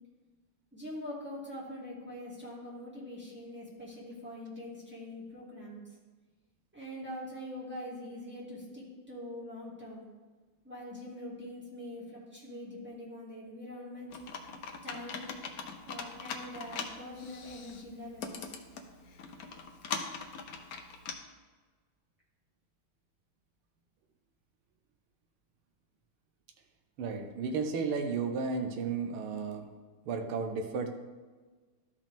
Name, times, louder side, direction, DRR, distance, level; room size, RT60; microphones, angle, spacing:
voice 1, 0.7-5.8 6.7-10.1 10.6-14.1 14.8-15.3 15.8-18.6, left 1 dB, 5° right, -6 dB, 1.9 m, -43 dB
Computer keyboard, 14.1-21.1, left 5 dB, 65° left, 0.9 m, -42 dB
voice 2, 27.0-29.7 30.1-30.9, right 5 dB, 80° right, 6 dB, 1.7 m, -33 dB
12.5 x 5.2 x 3.5 m, 1.4 s
omnidirectional pair, 2.4 m